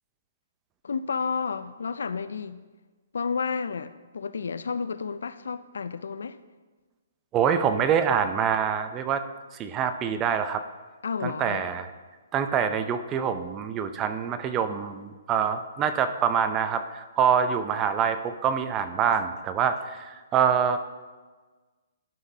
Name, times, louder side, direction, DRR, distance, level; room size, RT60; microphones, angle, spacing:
voice 1, 0.8-2.6 3.1-6.4 11.0-11.6, left 5 dB, 80° left, 0.4 m, -31 dB
voice 2, 7.3-9.2 9.6-10.6 11.2-11.9 12.3-20.8, right 7 dB, 20° right, 0.5 m, -25 dB
11.5 x 5.8 x 2.7 m
hypercardioid pair, 145°, 0 cm